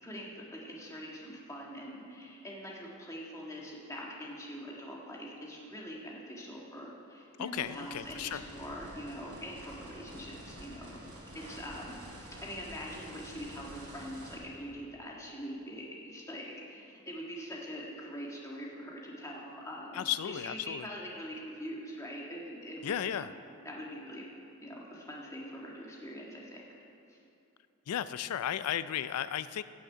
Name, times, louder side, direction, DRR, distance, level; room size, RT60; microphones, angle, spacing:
voice 1, 0.0-11.0 11.3-23.3 23.6-24.2 24.6-26.6 27.1-27.2, equal, 15° left, -3 dB, 1.6 m, -43 dB
voice 2, 7.4-8.4 20.0-20.8 22.8-23.3 27.9-29.6, left 10 dB, 90° left, 14 dB, 0.4 m, -34 dB
sound 1, 7.6-14.4, right 1 dB, 85° right, 3.2 m, -49 dB
17.0 x 6.4 x 5.6 m, 2.7 s
head